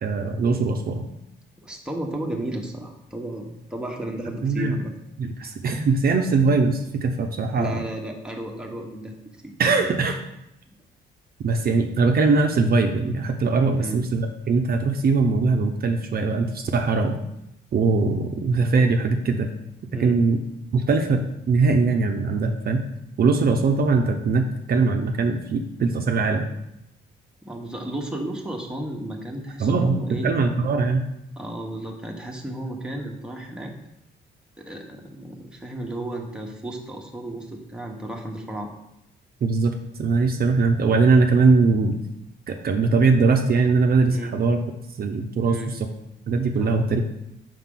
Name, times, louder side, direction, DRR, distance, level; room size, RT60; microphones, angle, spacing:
voice 1, 0.0-1.0 4.4-4.8 5.2-7.8 9.6-10.2 11.4-17.2 17.7-19.5 20.0-20.4 20.7-21.2 21.5-22.8 23.2-26.4 29.6-30.0 30.2-31.0 39.4-42.0 42.5-44.6 45.0-45.6 46.3-47.0, right 4 dB, 50° right, 4 dB, 0.7 m, -21 dB
voice 2, 1.6-4.9 7.6-9.2 9.4-9.5 13.7-14.0 19.9-20.2 27.4-30.3 31.4-33.7 34.6-38.7 44.1-44.3 45.4-45.7 46.5-46.8, right 1 dB, 5° right, 0 dB, 1.1 m, -33 dB
5.7 x 5.0 x 3.7 m, 0.84 s
cardioid pair, 90°, 20 cm